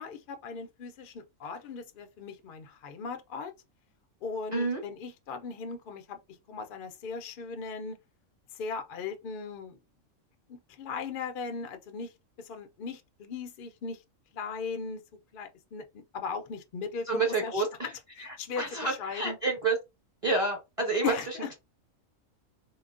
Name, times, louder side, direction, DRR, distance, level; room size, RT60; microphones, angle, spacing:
voice 1, 0.0-3.5 4.2-6.2 6.5-8.0 8.6-9.8 10.5-12.1 12.4-14.0 14.3-15.0 15.3-17.6 18.2-19.4 21.0-21.5, left 5 dB, 60° left, 0.6 m, -38 dB
voice 2, 17.1-17.7 18.5-19.8 20.2-21.1, right 3 dB, 30° right, 0.9 m, -28 dB
3.8 x 2.0 x 2.4 m
omnidirectional pair, 1.4 m